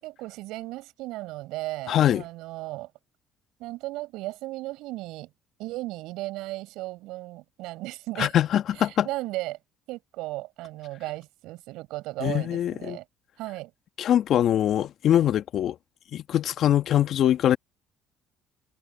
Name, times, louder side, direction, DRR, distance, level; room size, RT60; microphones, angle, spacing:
voice 1, 0.0-2.9 3.6-5.3 5.6-8.3 9.0-9.6 9.9-13.0 13.4-13.7, right 19 dB, 70° right, 6.4 m, -35 dB
voice 2, 1.9-2.2 8.2-9.1 12.2-13.0 14.0-15.8 16.1-17.6, left 11 dB, 60° left, 1.7 m, -23 dB
hypercardioid pair, 60°, 0 cm